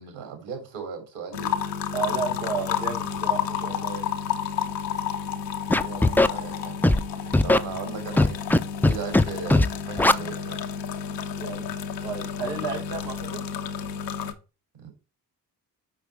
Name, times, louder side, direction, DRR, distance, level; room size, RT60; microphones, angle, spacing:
voice 1, 0.0-1.6 6.0-6.8 7.4-8.4 8.8-10.6 14.8-14.9, right 6 dB, 65° right, 3.2 m, -37 dB
sound 1, 1.3-14.3, left 8 dB, 85° left, 0.8 m, -31 dB
voice 2, 1.9-4.1 5.8-6.1 7.3-7.6 11.3-11.7 12.0-13.5, right 5 dB, 90° right, 1.3 m, -33 dB
Scratching (performance technique), 5.7-6.3 6.8-7.0 7.3-7.6 8.2-8.6 8.8-9.2 9.5-9.7 10.0-10.1, left 1 dB, 5° left, 0.4 m, -17 dB
7.1 x 5.8 x 3.4 m
hypercardioid pair, 40°, 48 cm